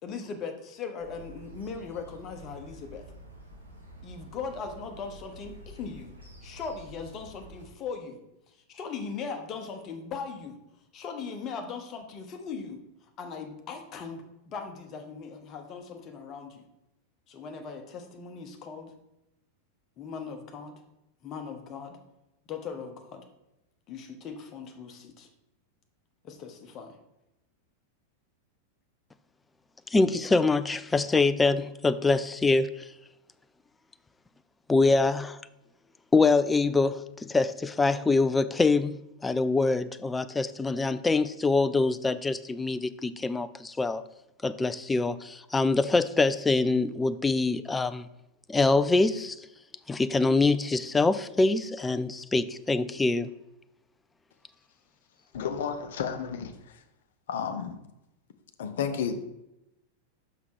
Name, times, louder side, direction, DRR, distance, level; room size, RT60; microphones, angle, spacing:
voice 1, 0.0-3.1 4.0-6.2 6.4-8.2 8.7-10.6 10.9-12.8 13.2-16.6 17.3-18.9 20.0-20.7 21.2-22.0 22.5-23.2 23.9-25.3 26.2-27.0, left 5 dB, 30° left, 5 dB, 1.1 m, -39 dB
sound 1, 1.0-7.7, right 1 dB, 75° right, 2.7 m, -48 dB
voice 2, 29.9-32.9 34.7-35.4 36.1-44.0 44.4-48.1 48.5-49.4 49.9-53.3, left 3 dB, 10° left, 13 dB, 0.3 m, -24 dB
voice 3, 55.3-56.5 57.3-57.8 58.6-59.2, left 7 dB, 60° left, 9 dB, 0.7 m, -31 dB
5.8 x 5.8 x 4.6 m, 0.90 s
figure-of-eight pair, 90°, 0 cm